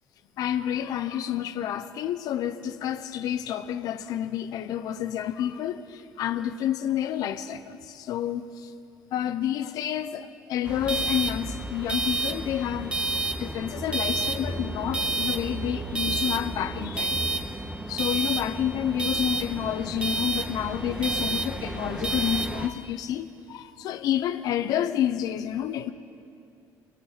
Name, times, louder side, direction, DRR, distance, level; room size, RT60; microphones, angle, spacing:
voice 1, 0.4-8.7 9.1-13.0 13.4-17.2 17.9-25.9, left 10 dB, 65° left, 0.9 m, -29 dB
sound 1, 10.6-22.7, right 2 dB, 15° right, 1.4 m, -30 dB
29.0 x 23.5 x 4.2 m
cardioid pair, 125°, 7 cm